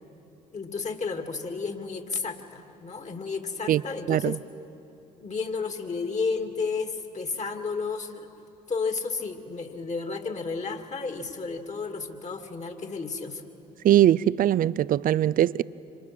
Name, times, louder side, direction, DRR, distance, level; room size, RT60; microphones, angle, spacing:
voice 1, 0.5-4.4 5.2-8.3 8.7-13.4, left 4 dB, 35° left, 2.6 m, -32 dB
voice 2, 4.1-4.4 13.8-15.6, right 12 dB, 45° right, 0.5 m, -21 dB
26.5 x 26.5 x 6.2 m
hypercardioid pair, 55°, 20 cm